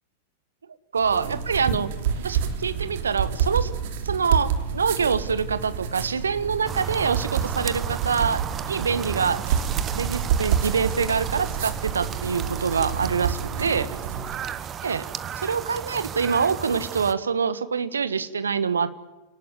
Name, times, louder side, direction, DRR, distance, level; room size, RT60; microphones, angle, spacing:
voice 1, 0.9-1.9 2.2-3.7 4.0-8.4 8.7-9.4 9.9-13.9 14.8-15.1 15.4-18.9, right 6 dB, 70° right, 13 dB, 1.4 m, -25 dB
Pen On Paper, 1.0-14.4, right 8 dB, 55° right, 3.0 m, -28 dB
sound 1, 6.7-17.1, right 8 dB, 25° right, 1.3 m, -34 dB
28.5 x 19.0 x 9.5 m, 1.2 s
figure-of-eight pair, 90°, 0 cm